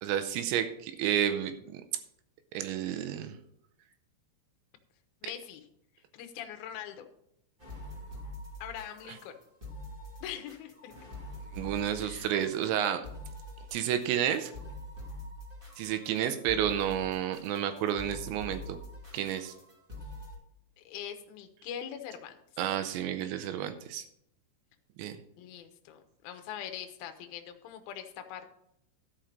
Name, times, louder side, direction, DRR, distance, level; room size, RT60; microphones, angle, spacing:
voice 1, 0.0-1.8 2.5-3.4 11.5-13.0 13.7-14.5 15.8-18.8 19.1-19.5 22.6-24.0 25.0-25.2, right 10 dB, 85° right, 9 dB, 2.9 m, -31 dB
voice 2, 5.2-5.7 6.1-7.1 8.6-9.4 10.2-10.9 12.0-12.3 20.8-22.4 25.4-28.5, left 9 dB, 75° left, 6 dB, 2.2 m, -42 dB
sound 1, 7.6-20.3, left 1 dB, 40° right, 0.7 m, -45 dB
12.5 x 5.8 x 5.2 m, 0.74 s
omnidirectional pair, 5.4 m